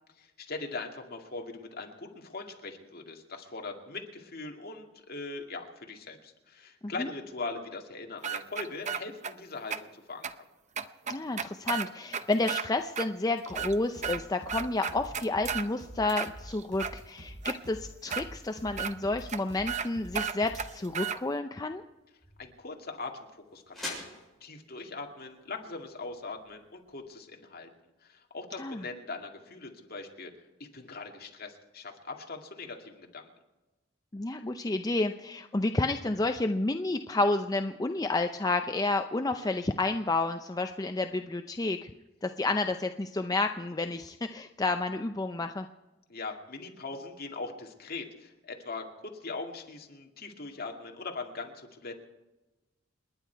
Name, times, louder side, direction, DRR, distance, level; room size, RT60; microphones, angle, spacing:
voice 1, 0.2-10.3 22.4-27.7 28.0-30.3 30.6-33.3 46.1-52.0, left 3 dB, 50° left, 2 dB, 2.3 m, -41 dB
sound 1, 8.2-9.3 9.7-9.8 10.2-10.3 10.8-12.7 13.0-13.1 13.4-14.2 14.5-15.7 16.1-16.9 17.4-17.6 18.1-18.2 18.8-18.9 19.3-19.4 19.7-19.9 20.1-21.2, right 7 dB, 35° right, 0.7 m, -33 dB
voice 2, 11.1-21.8 28.6-28.8 34.1-41.9 42.2-45.7, left 2 dB, 20° left, 6 dB, 0.5 m, -30 dB
sound 2, 13.5-20.7, right 1 dB, 65° right, 7.3 m, -47 dB
sound 3, 21.1-27.0, left 2 dB, ahead, 7.5 m, -47 dB
29.0 x 10.5 x 4.6 m, 1.1 s
head